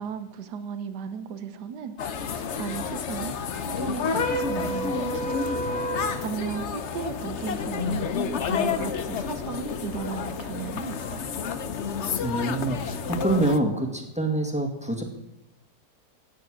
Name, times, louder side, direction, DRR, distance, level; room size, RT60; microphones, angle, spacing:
voice 1, 0.0-1.9 2.6-5.4 5.7-8.1 8.4-11.3, right 7 dB, 85° right, 10 dB, 1.5 m, -36 dB
sound 1, 2.0-13.6, left 6 dB, 55° left, 1.0 m, -30 dB
sound 2, 4.0-6.2, equal, 70° left, 1.6 m, -29 dB
voice 2, 12.2-15.0, right 2 dB, 5° right, 3 dB, 1.9 m, -26 dB
16.0 x 9.4 x 6.4 m, 0.95 s
omnidirectional pair, 1.7 m